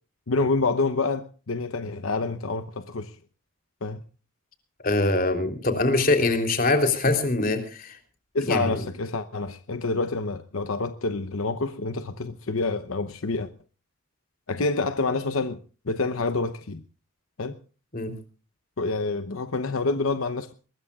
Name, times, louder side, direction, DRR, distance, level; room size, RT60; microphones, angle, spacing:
voice 1, 0.3-3.2 3.8-4.0 8.3-13.5 14.5-15.6 15.8-16.8 17.4-17.6 18.8-20.5, left 3 dB, 80° left, 0.9 m, -27 dB
voice 2, 4.8-8.0 8.4-8.8 17.9-18.1, left 2 dB, 40° left, 3.5 m, -23 dB
23.0 x 20.5 x 2.4 m
head